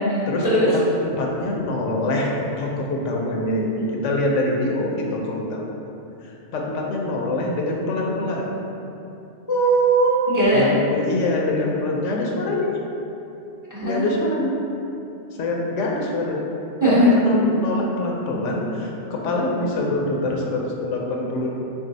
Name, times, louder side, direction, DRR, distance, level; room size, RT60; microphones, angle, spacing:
voice 1, 0.3-2.3 2.6-5.6 6.2-8.5 10.5-12.8 13.8-14.5 15.4-16.4 16.8-21.6, left 2 dB, 80° left, -1 dB, 1.0 m, -25 dB
voice 2, 9.5-10.7 13.7-14.1 16.8-17.1, right 1 dB, 25° right, -8 dB, 0.5 m, -18 dB
3.7 x 2.7 x 3.9 m, 2.8 s
omnidirectional pair, 1.2 m